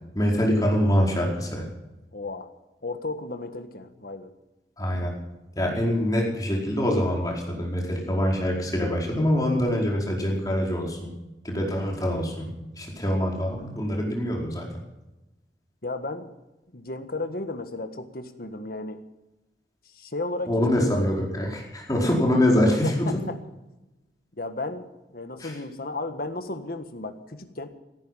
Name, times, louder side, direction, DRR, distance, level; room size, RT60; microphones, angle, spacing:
voice 1, 0.1-1.6 4.8-5.2 5.6-11.1 11.4-14.7 20.5-23.2 25.4-25.5, equal, 20° left, -1 dB, 4.6 m, -24 dB
voice 2, 2.1-2.5 2.8-4.3 13.5-13.9 15.8-16.3 16.7-19.0 19.9-21.1 22.8-23.4 24.4-27.7, left 2 dB, 55° left, 8 dB, 1.6 m, -34 dB
16.0 x 14.5 x 5.7 m, 1.0 s
head